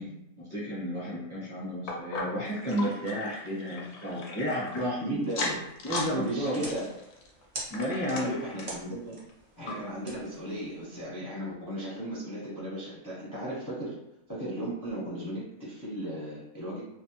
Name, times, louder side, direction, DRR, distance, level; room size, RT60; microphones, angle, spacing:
voice 1, 0.4-5.2 5.8-6.7 7.7-8.3, equal, 25° right, -9 dB, 0.7 m, -32 dB
sound 1, 1.9-4.8 5.2-6.1 6.4-8.8 9.3-9.4 9.7-9.8 10.4-10.5, left 3 dB, 65° left, 0.7 m, -37 dB
voice 2, 5.0-5.6 6.1-6.9 8.1-9.2 9.6-13.9 14.3-16.8, right 1 dB, 20° left, -8 dB, 0.5 m, -36 dB
sound 2, 5.2-11.0, right 1 dB, 50° right, 0.3 m, -45 dB
2.6 x 2.2 x 2.8 m, 0.84 s
omnidirectional pair, 1.5 m